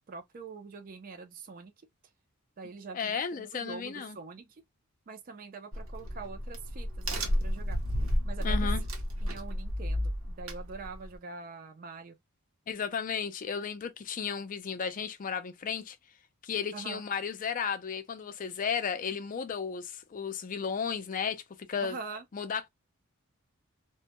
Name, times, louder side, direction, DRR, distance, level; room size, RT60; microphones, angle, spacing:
voice 1, 0.1-1.7 2.6-4.4 5.1-7.8 8.2-8.8 9.2-12.1 16.7-17.0 21.8-22.2, right 4 dB, 40° right, 0.4 m, -44 dB
voice 2, 2.9-4.2 8.4-8.8 12.7-16.0 16.4-21.4 21.7-22.0 22.3-22.7, left 6 dB, 40° left, 0.4 m, -34 dB
Crack, 5.7-11.2, equal, 65° right, 0.7 m, -31 dB
2.2 x 2.1 x 2.8 m
head